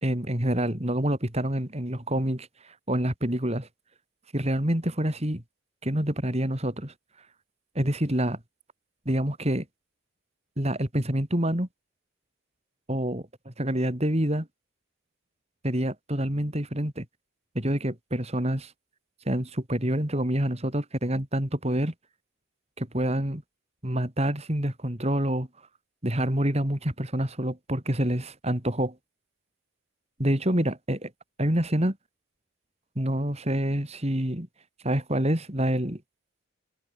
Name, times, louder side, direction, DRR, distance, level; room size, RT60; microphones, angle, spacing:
voice 1, 0.0-3.7 4.3-5.4 5.8-6.9 7.7-8.4 9.0-9.6 10.6-11.7 12.9-14.5 15.6-17.0 17.5-18.7 19.2-21.9 22.8-23.4 23.8-25.5 26.0-29.0 30.2-31.1 31.4-32.0 32.9-34.5 34.8-36.0, right 1 dB, 30° right, 3.1 m, -27 dB
head